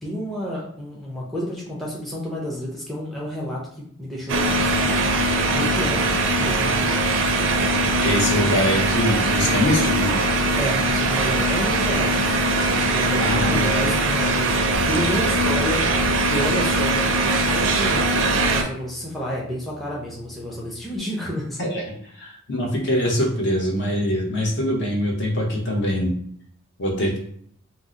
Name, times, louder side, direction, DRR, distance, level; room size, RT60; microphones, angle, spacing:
voice 1, 0.0-4.8 5.5-6.1 6.4-7.0 10.6-12.4 12.7-15.8 16.2-17.1 17.4-21.6, equal, ahead, -4 dB, 0.5 m, -30 dB
sound 1, 4.3-18.6, right 2 dB, 60° right, 0.4 m, -21 dB
voice 2, 8.0-10.1 13.2-13.6 21.6-21.8 22.2-26.1 26.8-27.2, left 1 dB, 55° left, -1 dB, 0.8 m, -23 dB
Bass guitar, 14.7-21.0, right 1 dB, 25° left, 0.8 m, -41 dB
2.7 x 2.0 x 3.6 m, 0.63 s
head